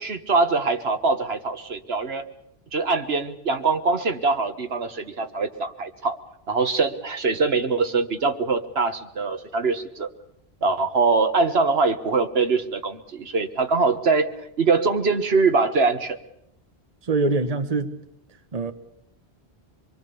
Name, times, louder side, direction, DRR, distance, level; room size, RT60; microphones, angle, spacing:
voice 1, 0.0-2.3 2.7-6.2 6.5-10.1 10.6-14.3 14.6-16.2, right 4 dB, 75° right, 8 dB, 1.6 m, -23 dB
voice 2, 17.0-17.9 18.5-18.7, right 3 dB, 40° right, 9 dB, 1.2 m, -23 dB
25.5 x 23.0 x 7.0 m, 0.79 s
omnidirectional pair, 1.1 m